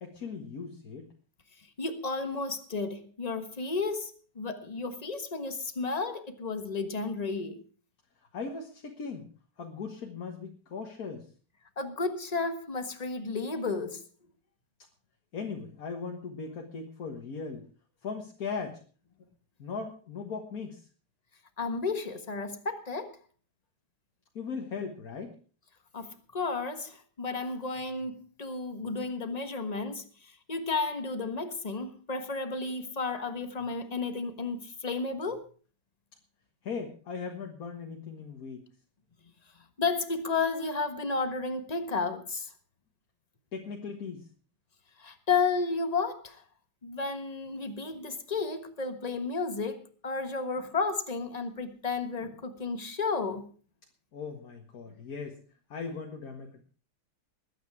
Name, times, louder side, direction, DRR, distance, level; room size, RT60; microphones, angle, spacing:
voice 1, 0.0-1.1 8.2-9.3 9.6-11.3 15.3-17.6 18.0-18.8 19.6-20.9 24.4-25.3 36.6-38.6 43.5-44.3 54.1-55.4 55.7-56.6, left 5 dB, 45° left, 1.8 m, -38 dB
voice 2, 1.8-7.6 11.8-14.0 21.6-23.1 25.9-30.0 30.5-35.5 39.8-42.5 45.0-46.4 46.8-53.4, left 4 dB, 25° left, 1.1 m, -32 dB
21.0 x 9.1 x 4.8 m
omnidirectional pair, 2.4 m